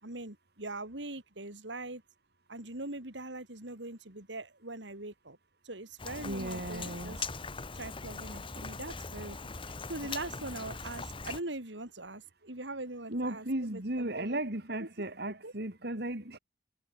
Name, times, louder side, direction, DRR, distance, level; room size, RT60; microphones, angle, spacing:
voice 1, 0.0-2.0 2.5-5.4 5.6-7.3 7.7-9.4 9.6-14.4 14.8-14.9 15.4-15.5, right 2 dB, 75° right, 3.7 m, -42 dB
Rain, 6.0-11.4, left 4 dB, 30° left, 1.6 m, -41 dB
voice 2, 6.2-7.2 13.1-16.4, right 1 dB, 60° right, 3.1 m, -35 dB
head